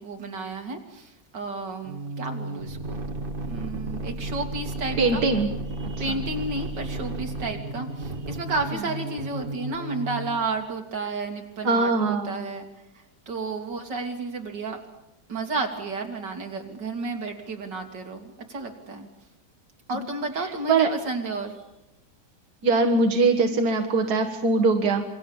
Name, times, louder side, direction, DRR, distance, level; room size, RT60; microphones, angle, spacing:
voice 1, 0.0-3.0 3.4-5.2 5.9-12.7 13.3-14.8 15.3-19.1 19.9-21.6, right 3 dB, 85° right, 3 dB, 3.3 m, -32 dB
sound 1, 1.8-10.5, right 2 dB, 30° right, 1.6 m, -33 dB
voice 2, 5.0-5.5 5.8-5.9 11.6-12.4 20.7-20.9 22.6-25.1, right 3 dB, 65° right, 3 dB, 2.2 m, -21 dB
27.5 x 23.0 x 7.3 m, 0.90 s
omnidirectional pair, 1.9 m